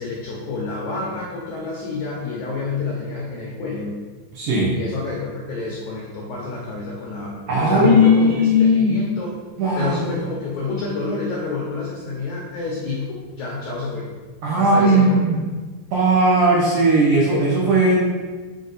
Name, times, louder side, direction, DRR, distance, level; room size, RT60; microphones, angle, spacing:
voice 1, 0.0-4.0 4.7-8.3 8.6-9.3 9.8-14.1 14.5-15.2, left 3 dB, 80° left, -3 dB, 1.7 m, -28 dB
voice 2, 4.4-4.8 7.5-9.0 9.6-10.0 14.4-15.4 15.9-18.0, equal, 75° right, -4 dB, 1.9 m, -17 dB
6.3 x 4.2 x 4.0 m, 1.4 s
omnidirectional pair, 4.5 m